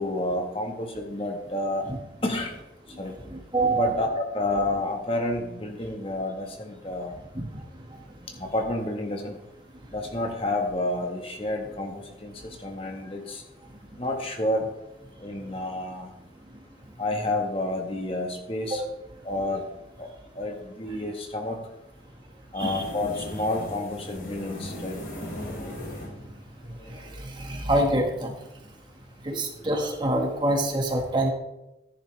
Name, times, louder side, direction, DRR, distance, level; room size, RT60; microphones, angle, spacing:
voice 1, 0.0-1.8 2.2-2.5 3.0-3.1 3.7-7.2 8.4-9.3 9.9-12.3 12.6-13.4 14.0-14.6 15.2-16.1 17.0-18.8 19.2-19.6 20.0-20.1 20.3-21.6 22.5-25.0 29.3-29.4, left 1 dB, 30° left, 2 dB, 1.4 m, -29 dB
voice 2, 3.3-3.9 7.3-7.6 18.7-18.8 22.6-22.8 26.9-28.3 29.2-31.3, right 1 dB, 25° right, 1 dB, 1.6 m, -26 dB
sound 1, 22.6-27.2, left 1 dB, 50° left, 3.5 m, -38 dB
14.0 x 10.5 x 3.4 m, 0.92 s
head